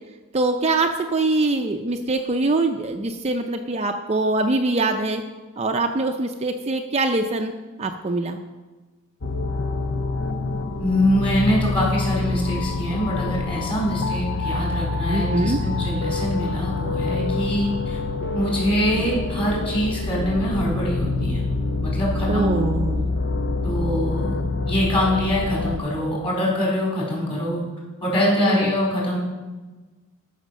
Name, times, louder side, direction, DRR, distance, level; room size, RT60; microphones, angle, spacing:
voice 1, 0.3-5.2 5.6-7.5 7.8-8.4 15.1-15.6 22.3-23.1 28.4-28.9, right 2 dB, 30° right, 4 dB, 0.5 m, -23 dB
sound 1, 9.2-25.8, left 3 dB, 55° left, 0.7 m, -26 dB
voice 2, 10.8-18.0 18.3-21.4 21.8-22.5 23.6-24.4 24.7-27.6 28.0-29.2, equal, 25° left, -5 dB, 4.1 m, -24 dB
13.0 x 5.8 x 6.4 m, 1.3 s
head